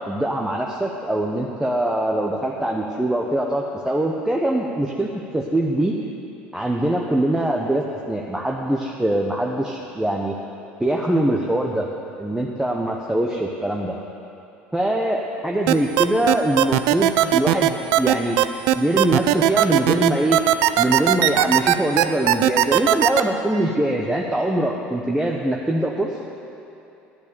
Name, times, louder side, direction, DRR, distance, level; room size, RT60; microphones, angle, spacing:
voice 1, 0.0-5.9 6.5-10.4 10.8-11.9 12.2-14.0 14.7-18.4 18.7-20.4 20.8-26.1, right 1 dB, 10° right, -1 dB, 1.1 m, -23 dB
sound 1, 15.7-23.2, right 14 dB, 70° right, 0.4 m, -17 dB
12.0 x 8.2 x 6.9 m, 2.9 s
hypercardioid pair, 75°, 5 cm